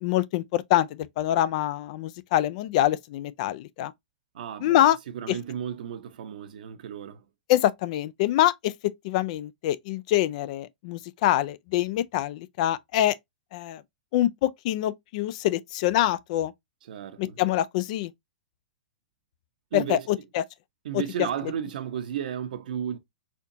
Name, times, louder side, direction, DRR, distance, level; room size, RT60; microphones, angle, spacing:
voice 1, 0.0-3.9 4.6-5.0 7.5-13.2 13.5-13.8 14.1-16.5 17.2-18.1 19.7-20.4 20.9-21.0, left 13 dB, 50° left, 0.3 m, -25 dB
voice 2, 4.3-7.2 16.9-17.4 19.7-20.1 20.8-23.0, right 9 dB, 65° right, 0.7 m, -34 dB
4.2 x 2.8 x 2.6 m
hypercardioid pair, 120°, 5 cm